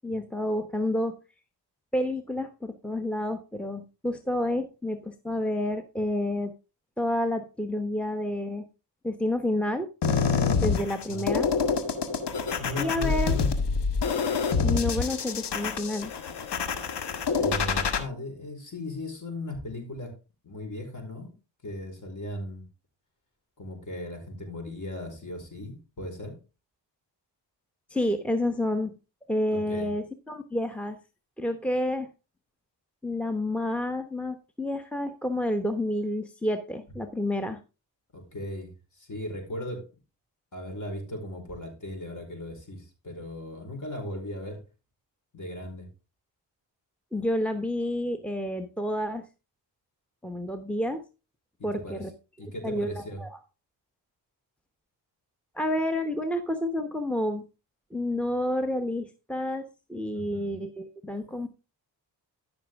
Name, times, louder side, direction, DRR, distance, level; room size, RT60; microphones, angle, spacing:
voice 1, 0.0-1.1 1.9-6.5 7.0-8.6 9.0-9.9 10.6-11.5 12.8-13.4 14.6-16.1 27.9-28.9 29.3-31.0 31.4-32.1 33.0-37.6 47.1-49.3 50.2-51.0 51.6-52.1 52.6-53.4 55.5-57.5 57.9-61.5, left 1 dB, 5° left, 8 dB, 1.1 m, -29 dB
sound 1, 10.0-18.0, left 5 dB, 65° left, 1.7 m, -26 dB
voice 2, 12.6-13.7 17.3-20.1 20.4-21.3 21.6-22.6 23.6-26.4 29.5-29.9 38.1-39.8 40.5-44.6 45.3-45.9 51.6-52.1 52.4-53.2 60.1-60.6, left 1 dB, 45° left, 4 dB, 4.9 m, -37 dB
13.5 x 6.2 x 3.6 m, 0.30 s
cardioid pair, 65°, 43 cm